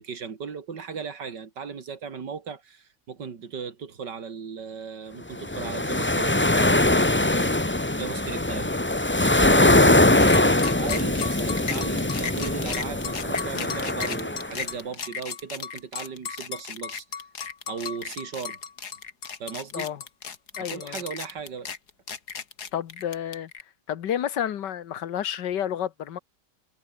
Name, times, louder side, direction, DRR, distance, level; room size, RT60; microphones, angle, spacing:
voice 1, 0.0-7.5 8.0-8.7 9.2-17.2 17.7-18.6 19.4-19.9 20.6-21.7, right 6 dB, 85° right, 2.8 m, -37 dB
sound 1, 5.4-14.6, left 1 dB, 10° left, 0.7 m, -22 dB
sound 2, 10.2-23.6, left 6 dB, 65° left, 2.4 m, -34 dB
voice 2, 20.6-21.0 22.7-23.5 23.9-26.2, left 10 dB, 85° left, 1.8 m, -30 dB
omnidirectional pair, 1.8 m